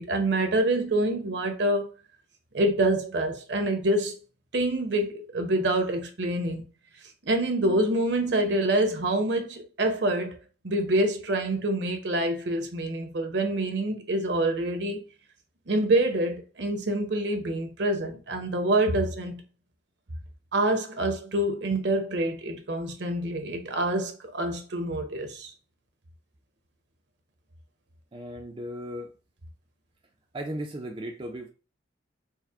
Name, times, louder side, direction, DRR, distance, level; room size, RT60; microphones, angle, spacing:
voice 1, 0.0-1.9 2.5-4.2 4.5-6.6 7.3-10.4 10.6-15.0 15.7-19.4 20.5-25.5, right 1 dB, 60° right, 0.8 m, -26 dB
voice 2, 28.1-29.1 30.3-31.5, equal, 25° right, 0.4 m, -36 dB
4.5 x 2.1 x 3.5 m
head